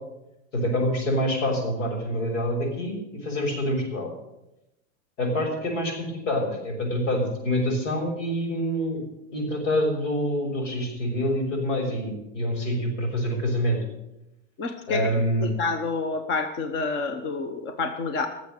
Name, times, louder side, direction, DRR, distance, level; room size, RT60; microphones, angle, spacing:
voice 1, 0.5-4.1 5.2-9.0 9.3-13.8 14.9-15.5, equal, 85° left, 2 dB, 6.4 m, -26 dB
voice 2, 14.6-15.0 15.4-18.3, left 4 dB, 30° left, 7 dB, 1.1 m, -28 dB
18.0 x 7.6 x 7.8 m, 0.91 s
supercardioid pair, 155°, 36 cm